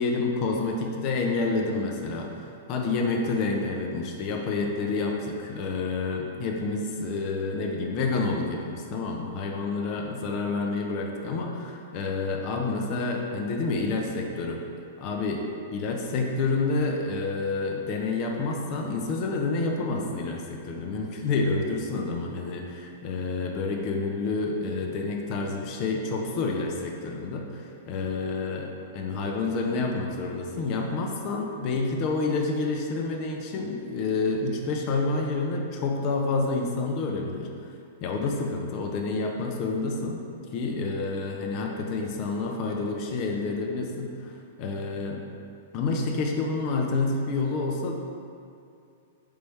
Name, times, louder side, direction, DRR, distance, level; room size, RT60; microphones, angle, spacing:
voice 1, 0.0-14.6 15.0-15.4 15.7-37.5 38.0-40.2 40.5-45.2 45.7-47.9, left 3 dB, 25° left, 1 dB, 0.4 m, -28 dB
4.0 x 3.4 x 3.3 m, 2.5 s
supercardioid pair, 175°, 0 cm